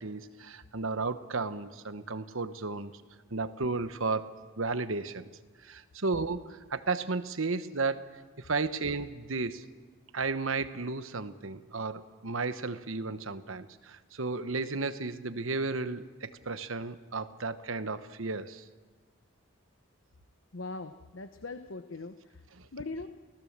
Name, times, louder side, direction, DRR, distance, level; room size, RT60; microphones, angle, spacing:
voice 1, 0.0-2.9 3.3-4.3 4.6-5.3 5.6-9.7 10.1-18.6 22.5-22.7, right 3 dB, 75° right, 11 dB, 1.1 m, -33 dB
voice 2, 20.5-22.4 22.7-23.1, left 3 dB, 65° left, 9 dB, 0.9 m, -40 dB
28.5 x 17.5 x 7.4 m, 1.4 s
head